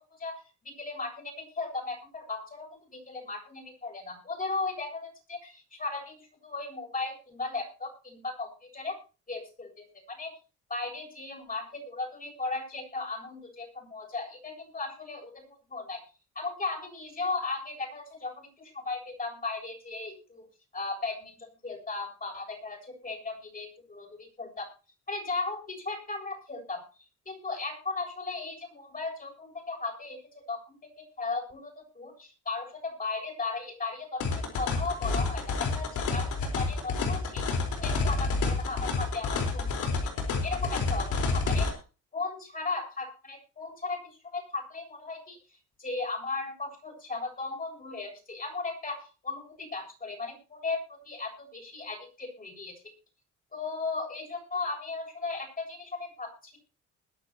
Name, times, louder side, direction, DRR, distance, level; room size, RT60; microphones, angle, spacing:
voice 1, 0.0-9.0 9.3-10.3 10.7-16.0 16.3-20.4 20.7-24.7 25.1-26.8 27.3-30.6 31.0-40.0 40.4-41.7 42.1-45.4 45.8-52.7 53.5-56.6, left 3 dB, 30° left, 1 dB, 7.8 m, -36 dB
sound 1, 34.2-41.7, left 3 dB, 75° left, 4.5 m, -29 dB
21.0 x 10.5 x 3.0 m, 0.33 s
cardioid pair, 90°, 30 cm